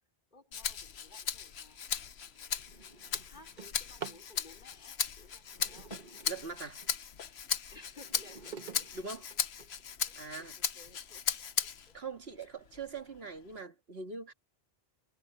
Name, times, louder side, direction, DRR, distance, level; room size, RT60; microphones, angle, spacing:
voice 1, 0.3-6.2 7.7-11.4 12.4-12.6, left 2 dB, 50° left, 4.3 m, -59 dB
Rattle (instrument), 0.5-12.0 12.4-13.6, left 7 dB, 80° left, 1.2 m, -37 dB
Drawer open or close, 1.6-1.9 2.3-4.3 5.4-7.0 7.5-9.9 10.6-10.7 11.2-11.3 11.6-12.0, right 6 dB, 45° right, 1.4 m, -49 dB
voice 2, 6.3-6.8 8.9-9.3 10.2-10.5 11.9-14.3, right 4 dB, 70° right, 2.1 m, -42 dB
omnidirectional pair, 1.1 m